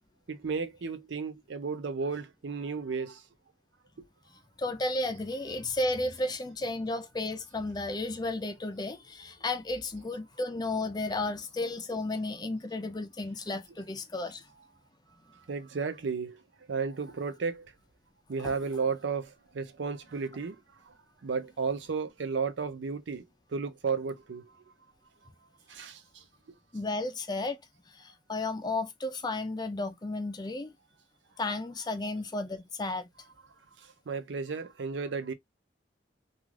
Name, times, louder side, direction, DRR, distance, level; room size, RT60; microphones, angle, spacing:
voice 1, 0.3-3.2 4.0-4.1 15.3-16.4 16.7-17.7 18.3-20.6 20.9-21.0 21.2-23.2 23.5-24.6 25.7-26.2 33.3-33.4 33.8-35.3, right 5 dB, 85° right, 0.5 m, -33 dB
voice 2, 4.6-14.4 18.4-18.5 26.7-27.6 27.9-30.7 31.4-33.1, left 2 dB, 25° left, 0.4 m, -33 dB
2.4 x 2.4 x 3.1 m
head